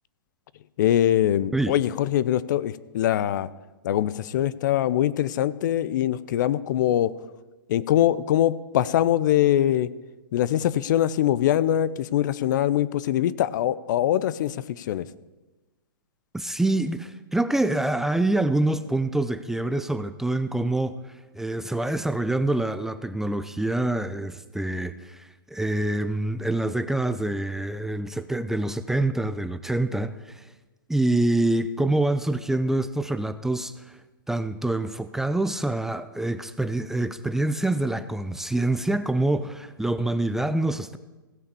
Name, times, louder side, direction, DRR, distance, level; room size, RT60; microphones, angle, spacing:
voice 1, 0.8-3.5 3.8-7.1 7.7-9.9 10.3-15.1, left 12 dB, 60° left, 18 dB, 0.5 m, -23 dB
voice 2, 16.3-30.5 30.9-34.0 34.3-41.0, right 2 dB, 5° right, 12 dB, 0.4 m, -26 dB
16.0 x 5.7 x 6.9 m, 1.1 s
hypercardioid pair, 125°, 12 cm